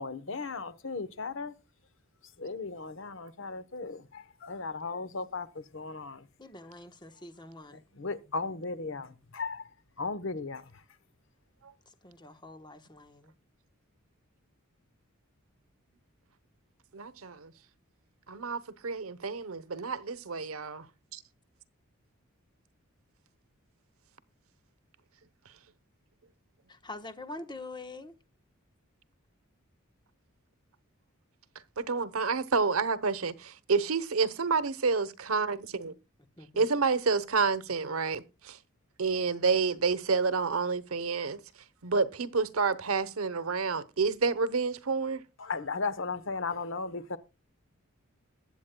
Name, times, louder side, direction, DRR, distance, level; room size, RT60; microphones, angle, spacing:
voice 1, 0.0-1.5 2.4-6.2 8.0-9.7 10.0-10.6 45.4-47.2, left 4 dB, 60° left, 1.0 m, -36 dB
voice 2, 6.4-7.8 11.9-13.3 26.7-28.2 36.4-36.6, left 2 dB, 20° left, 1.1 m, -45 dB
voice 3, 16.9-17.5 18.3-20.9 21.1-21.2 31.8-35.9 36.6-38.6 39.0-41.4 41.8-45.2, right 4 dB, 85° right, 0.9 m, -29 dB
21.0 x 8.3 x 2.3 m
head